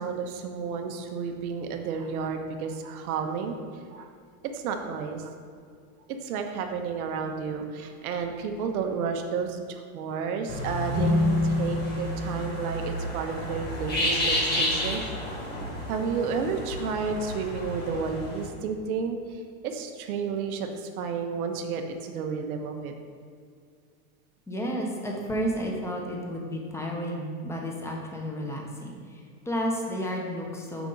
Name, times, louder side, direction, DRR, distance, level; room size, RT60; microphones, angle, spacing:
voice 1, 0.0-3.6 3.9-4.1 4.4-5.3 6.1-15.0 15.9-22.9, right 5 dB, 75° right, 4 dB, 1.0 m, -31 dB
sound 1, 10.5-18.4, equal, 20° left, 1.8 m, -31 dB
sound 2, 10.9-14.2, left 2 dB, 25° right, 1.1 m, -29 dB
voice 2, 24.5-29.2 29.4-30.9, equal, 5° left, -1 dB, 1.0 m, -32 dB
7.1 x 6.0 x 3.9 m, 2.1 s
supercardioid pair, 130°, 44 cm